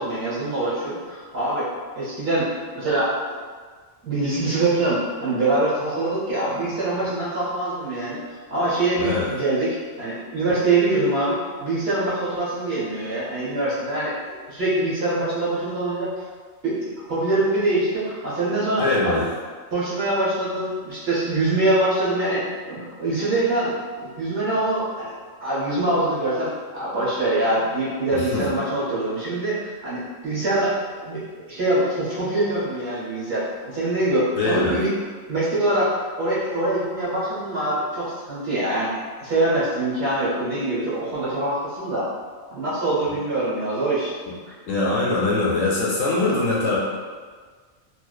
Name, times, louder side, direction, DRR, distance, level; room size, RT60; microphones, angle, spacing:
voice 1, 0.0-3.1 4.0-8.2 8.5-16.1 16.6-19.2 19.7-23.7 24.0-25.1 25.4-30.8 31.0-31.2 31.5-34.9 35.3-38.9 39.2-42.1 42.5-44.1, right 2 dB, 55° right, -9 dB, 1.2 m, -24 dB
voice 2, 18.8-19.3 28.1-28.4 34.4-34.8 44.7-46.8, left 2 dB, 75° left, -5 dB, 1.0 m, -22 dB
2.5 x 2.3 x 2.2 m, 1.5 s
omnidirectional pair, 1.3 m